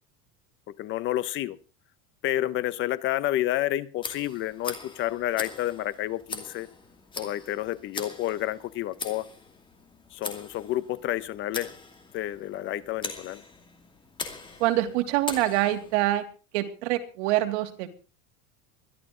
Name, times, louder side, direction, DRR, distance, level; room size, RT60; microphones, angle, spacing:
voice 1, 0.7-1.6 2.2-6.7 7.2-9.3 10.1-11.7 12.1-13.4, left 14 dB, 35° left, 16 dB, 0.8 m, -30 dB
Tick, 4.0-16.0, left 4 dB, 15° left, 2.5 m, -41 dB
voice 2, 14.6-16.2 16.5-17.9, right 15 dB, 80° right, 5 dB, 3.0 m, -25 dB
22.0 x 13.5 x 3.8 m, 0.35 s
cardioid pair, 170°, 34 cm